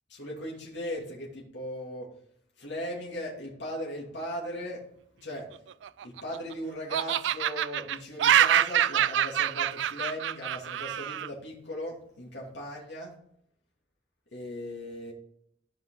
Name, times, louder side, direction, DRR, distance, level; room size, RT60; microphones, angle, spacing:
voice 1, 0.1-2.1 2.6-4.8 5.2-5.5 6.0-13.2 14.3-15.1, equal, 80° left, -3 dB, 2.5 m, -38 dB
Laughter, 5.7-6.5 6.9-11.3, right 10 dB, 80° right, 0.3 m, -26 dB
14.5 x 5.4 x 3.9 m, 0.70 s
head